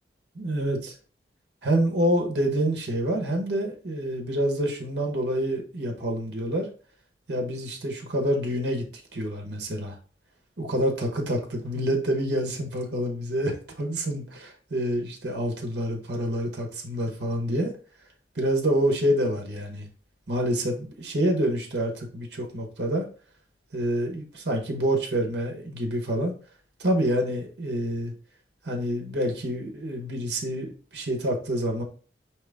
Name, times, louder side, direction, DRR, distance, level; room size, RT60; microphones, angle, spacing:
voice 1, 0.3-0.8 1.6-6.7 7.3-8.9 9.1-9.9 10.6-17.7 18.3-19.9 20.3-23.1 23.7-26.3 26.8-28.1 28.6-31.8, right 1 dB, 65° right, 2 dB, 1.1 m, -27 dB
4.8 x 3.1 x 3.4 m, 0.39 s
head